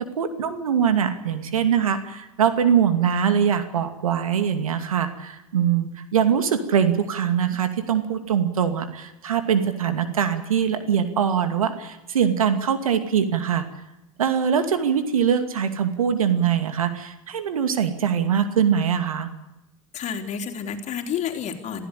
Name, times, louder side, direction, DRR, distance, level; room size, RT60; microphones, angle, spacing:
voice 1, 0.2-13.6 14.2-19.3, right 8 dB, 85° right, 8 dB, 2.5 m, -22 dB
voice 2, 19.9-21.9, left 7 dB, 40° left, 4 dB, 3.8 m, -30 dB
27.5 x 15.5 x 8.5 m, 0.95 s
hypercardioid pair, 85°, 18 cm